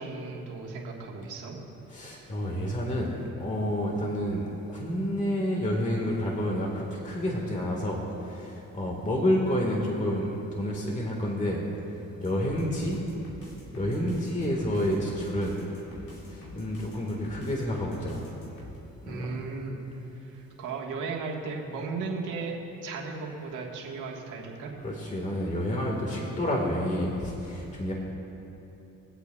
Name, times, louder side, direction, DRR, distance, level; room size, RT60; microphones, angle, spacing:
voice 1, 0.0-1.6 19.1-19.8 20.1-22.6 22.8-24.7, right 4 dB, 85° right, -1 dB, 1.6 m, -36 dB
voice 2, 1.9-11.6 11.9-13.0 13.7-15.6 16.2-18.3 19.0-19.3 24.8-27.9, equal, 25° left, -1 dB, 1.8 m, -29 dB
sound 1, 12.2-18.8, left 1 dB, 85° left, 2.8 m, -47 dB
24.5 x 8.3 x 2.4 m, 3.0 s
cardioid pair, 90°, 30 cm